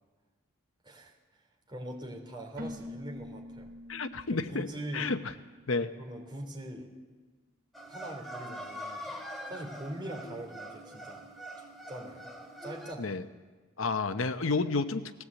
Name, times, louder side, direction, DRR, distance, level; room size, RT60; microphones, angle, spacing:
voice 1, 0.8-1.2 1.7-3.7 4.5-5.1 6.0-6.9 7.8-9.1 9.5-11.3 11.6-12.3 12.6-13.2, right 1 dB, 20° right, 0 dB, 3.4 m, -42 dB
Keyboard (musical), 2.6-6.2, left 1 dB, 50° right, 2.1 m, -46 dB
voice 2, 3.9-4.7 4.9-5.2 5.7-5.9 13.0-13.2 13.8-15.2, left 3 dB, 70° left, 10 dB, 0.9 m, -30 dB
sound 1, 7.7-12.9, equal, ahead, 2.1 m, -43 dB
19.5 x 16.5 x 8.3 m, 1.3 s
head